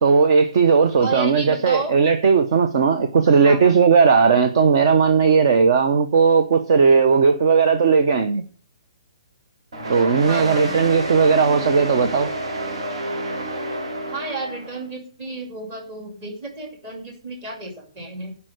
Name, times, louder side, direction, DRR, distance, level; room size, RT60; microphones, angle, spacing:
voice 1, 0.0-8.4 9.9-12.3, right 5 dB, 40° right, 0.7 m, -17 dB
voice 2, 1.0-1.9 3.3-3.8 10.3-10.8 14.1-18.3, right 3 dB, 20° right, 2.3 m, -32 dB
sound 1, 9.7-14.8, right 1 dB, 65° right, 3.1 m, -29 dB
11.0 x 5.5 x 6.3 m
hypercardioid pair, 175°, 3 cm